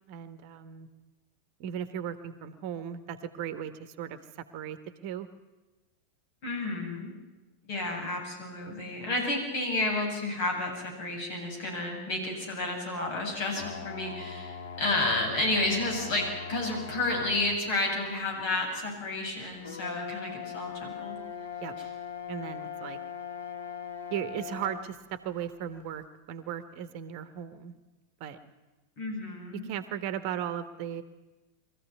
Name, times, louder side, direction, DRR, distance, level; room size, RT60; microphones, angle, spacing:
voice 1, 0.1-0.9 1.6-4.2 4.5-4.8 5.0-5.3 21.6-21.8 22.3-23.0 24.1-27.7 28.2-28.4 29.5-31.0, right 9 dB, 45° right, 11 dB, 1.4 m, -36 dB
voice 2, 6.4-7.1 7.6-21.2 29.0-29.7, left 2 dB, 45° left, 1 dB, 8.0 m, -31 dB
sound 1, 13.5-17.6 18.3-18.4 19.6-24.9, left 7 dB, 60° left, 1.5 m, -40 dB
23.5 x 15.0 x 9.5 m, 1.1 s
figure-of-eight pair, 90°, 0 cm